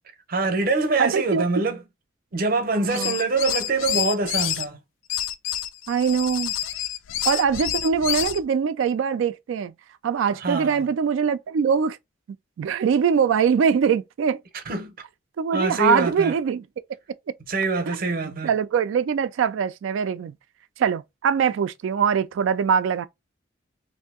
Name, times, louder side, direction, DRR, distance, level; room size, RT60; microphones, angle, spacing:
voice 1, 0.3-1.8 2.3-4.8 10.4-10.9 14.7-14.9 15.5-16.3 17.5-18.5, right 3 dB, 50° right, 0.7 m, -24 dB
voice 2, 1.0-1.4 2.7-3.2 5.9-6.5 7.2-9.7 10.0-12.0 12.6-14.4 15.4-16.6 17.9-18.0 18.4-20.3 20.8-23.1, right 6 dB, 75° right, 0.3 m, -22 dB
sound 1, 2.8-4.6 5.1-8.4, left 11 dB, 75° left, 0.4 m, -28 dB
2.7 x 2.6 x 3.5 m
head